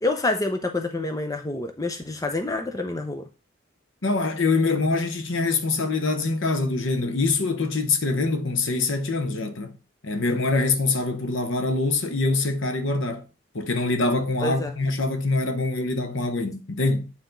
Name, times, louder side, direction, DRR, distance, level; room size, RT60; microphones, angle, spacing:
voice 1, 0.0-3.2 14.4-14.7, left 2 dB, 15° left, 0.6 m, -27 dB
voice 2, 4.0-9.8 10.0-13.3 13.5-17.1, left 3 dB, 65° left, 0.9 m, -24 dB
8.3 x 4.6 x 3.9 m
head